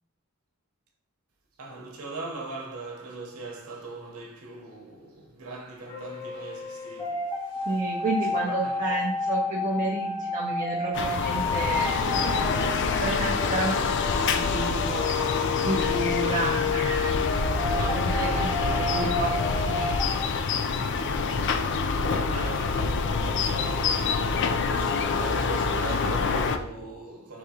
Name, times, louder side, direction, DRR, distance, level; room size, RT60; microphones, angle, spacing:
voice 1, 1.6-7.8 8.2-9.0 21.9-27.4, right 3 dB, 80° right, 0.9 m, -40 dB
sound 1, 5.9-20.3, left 3 dB, 15° left, 0.8 m, -31 dB
voice 2, 7.7-12.0 13.0-15.3 15.6-17.3 17.7-19.9, right 2 dB, 35° right, 0.5 m, -31 dB
sound 2, 10.9-26.6, left 4 dB, 55° left, 0.3 m, -26 dB
4.7 x 3.5 x 2.8 m
head